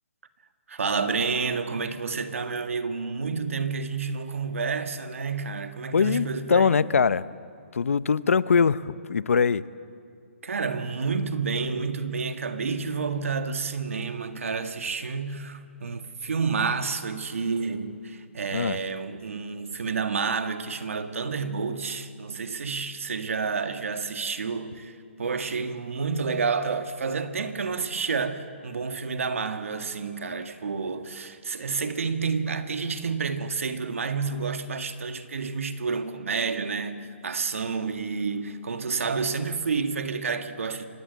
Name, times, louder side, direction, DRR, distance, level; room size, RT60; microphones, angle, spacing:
voice 1, 0.7-6.9 10.4-40.8, right 5 dB, 80° right, 1.9 m, -29 dB
voice 2, 5.9-7.2 7.7-9.6 18.5-18.8, left 6 dB, 90° left, 0.7 m, -22 dB
26.5 x 18.0 x 8.2 m
hypercardioid pair, 180°, 7 cm